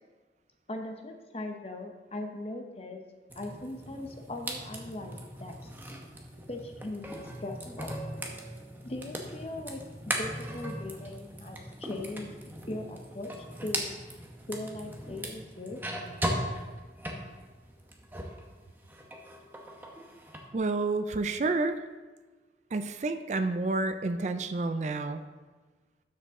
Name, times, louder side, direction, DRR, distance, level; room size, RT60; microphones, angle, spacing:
voice 1, 0.7-3.0 3.4-5.5 6.5-8.0 8.8-12.3 12.7-13.9 14.5-15.8, left 2 dB, 35° left, 3 dB, 0.8 m, -39 dB
sound 1, 3.3-18.4 18.8-20.5, right 1 dB, 10° right, 0.8 m, -39 dB
voice 2, 20.5-21.8 22.7-25.2, right 3 dB, 40° right, 9 dB, 0.4 m, -29 dB
12.0 x 5.3 x 3.6 m, 1.3 s
head